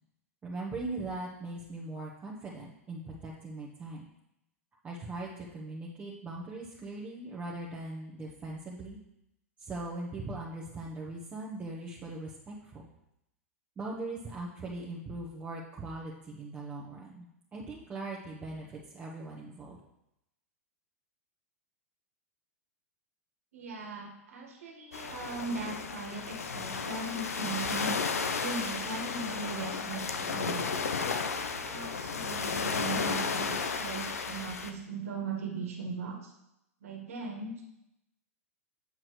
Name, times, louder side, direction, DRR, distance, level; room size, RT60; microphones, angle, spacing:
voice 1, 0.4-4.1 4.8-9.0 9.6-12.8 13.8-19.8, right 2 dB, 20° right, -4 dB, 1.2 m, -40 dB
voice 2, 23.5-28.0 28.4-30.6 31.0-36.3 36.8-37.5, right 4 dB, 70° right, 1 dB, 1.7 m, -39 dB
sound 1, 24.9-34.7, left 5 dB, 80° left, 0.8 m, -33 dB
8.3 x 7.5 x 3.2 m, 0.84 s
figure-of-eight pair, 100°, 8 cm